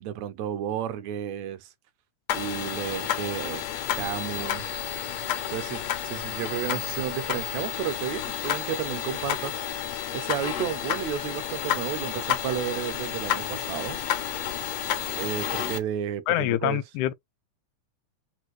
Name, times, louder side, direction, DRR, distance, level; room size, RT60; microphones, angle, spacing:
voice 1, 0.0-1.7 2.3-3.6 3.9-4.8 5.5-9.6 10.1-14.0 15.2-16.8, right 10 dB, 75° right, 1.8 m, -32 dB
sound 1, 2.3-15.8, left 11 dB, 70° left, 1.8 m, -31 dB
voice 2, 16.3-17.1, left 15 dB, 85° left, 2.0 m, -25 dB
6.2 x 2.2 x 3.0 m
omnidirectional pair, 3.4 m